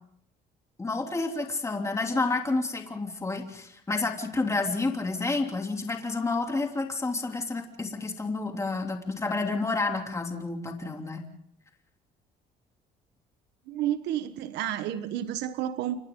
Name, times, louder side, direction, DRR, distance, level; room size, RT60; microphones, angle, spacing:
voice 1, 0.8-11.2, left 3 dB, 15° left, 3.0 m, -30 dB
voice 2, 13.7-16.0, right 11 dB, 85° right, 1.3 m, -31 dB
30.0 x 25.5 x 3.9 m
cardioid pair, 110°, 17 cm